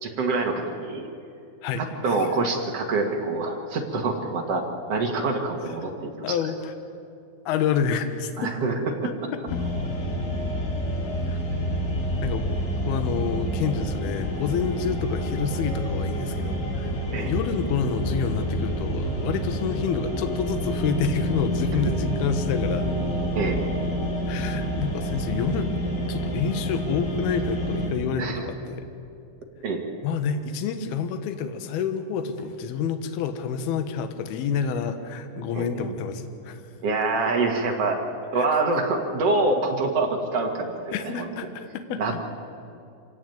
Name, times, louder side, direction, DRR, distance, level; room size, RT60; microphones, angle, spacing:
voice 1, 0.0-1.1 1.8-6.1 8.4-8.7 17.1-17.3 23.3-23.6 28.2-28.4 29.6-29.8 35.5-35.7 36.8-38.0 38.3-40.9 42.0-42.2, right 3 dB, 55° right, 1 dB, 1.7 m, -25 dB
voice 2, 1.6-2.3 6.2-6.7 7.5-8.5 9.0-9.6 11.3-11.4 12.2-12.6 12.9-22.9 24.3-25.7 26.1-28.8 30.0-36.6 38.3-38.5 40.9-42.2, left 6 dB, 65° left, 8 dB, 2.7 m, -28 dB
sound 1, 9.5-27.9, equal, 85° left, 7.2 m, -28 dB
25.5 x 17.0 x 9.3 m, 2.6 s
omnidirectional pair, 5.6 m